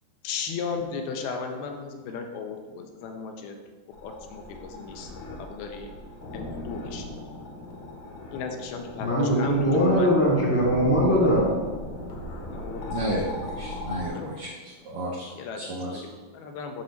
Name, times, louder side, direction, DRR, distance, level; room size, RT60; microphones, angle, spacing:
voice 1, 0.2-3.6 4.0-5.1 5.4-5.9 6.3-7.1 8.3-10.1 12.5-13.0 14.1-14.4 15.3-16.8, left 5 dB, 80° left, 4 dB, 2.6 m, -36 dB
sound 1, 3.9-14.1, left 1 dB, 65° left, 2.0 m, -38 dB
voice 2, 9.0-11.6, equal, 10° left, -5 dB, 1.0 m, -21 dB
voice 3, 12.9-14.5 14.8-15.3 15.6-16.0, right 1 dB, 75° right, -3 dB, 1.7 m, -32 dB
7.2 x 4.0 x 6.4 m, 1.4 s
omnidirectional pair, 4.5 m